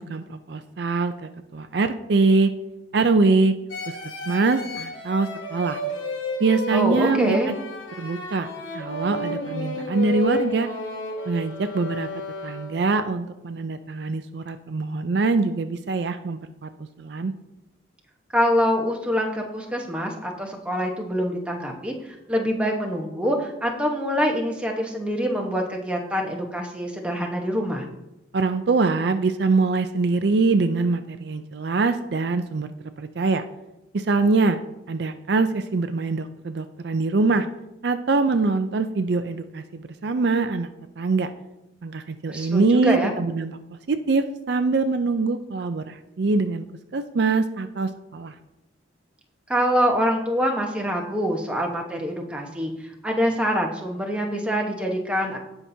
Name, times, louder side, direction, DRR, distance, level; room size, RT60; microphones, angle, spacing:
voice 1, 0.0-2.5 2.9-3.5 4.3-5.8 6.4-7.5 8.0-8.5 8.7-10.7 11.3-12.1 12.4-16.7 17.0-17.3 28.3-32.7 33.0-33.4 33.9-34.6 34.9-37.5 37.8-40.7 41.0-41.3 41.8-43.6 43.9-46.7 46.9-48.3, right 3 dB, 60° right, 9 dB, 0.5 m, -23 dB
sound 1, 3.7-13.0, left 1 dB, 85° left, 1.4 m, -32 dB
voice 2, 6.7-7.6 18.3-27.8 42.3-43.1 49.5-55.4, equal, 5° right, 0 dB, 1.1 m, -25 dB
17.0 x 5.8 x 2.7 m, 0.93 s
head